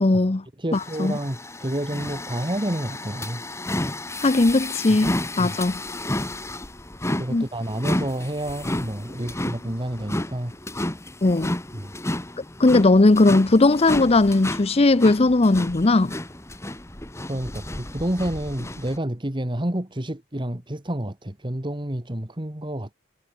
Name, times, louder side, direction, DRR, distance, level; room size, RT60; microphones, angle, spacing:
voice 1, 0.0-0.4 0.7-1.1 4.2-5.7 7.3-7.4 11.2-11.5 12.6-16.1, left 2 dB, 30° left, 0.6 m, -18 dB
voice 2, 0.6-3.4 5.4-5.6 7.2-10.5 11.7-11.9 17.3-22.9, right 1 dB, 25° right, 2.0 m, -29 dB
sound 1, 0.7-19.0, left 1 dB, 15° left, 1.6 m, -32 dB
head